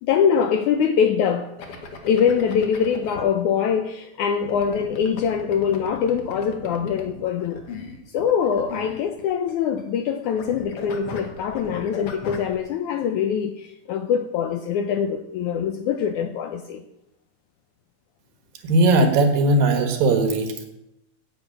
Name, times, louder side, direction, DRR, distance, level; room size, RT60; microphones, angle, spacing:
voice 1, 0.0-1.5 2.1-7.6 8.1-16.8, left 7 dB, 75° left, 7 dB, 1.8 m, -23 dB
sound 1, 1.6-3.2 4.4-10.1 10.4-12.5, left 4 dB, 50° left, 2.2 m, -37 dB
voice 2, 18.6-20.7, right 2 dB, 75° right, 6 dB, 3.1 m, -18 dB
10.5 x 8.2 x 8.5 m, 0.86 s
omnidirectional pair, 4.1 m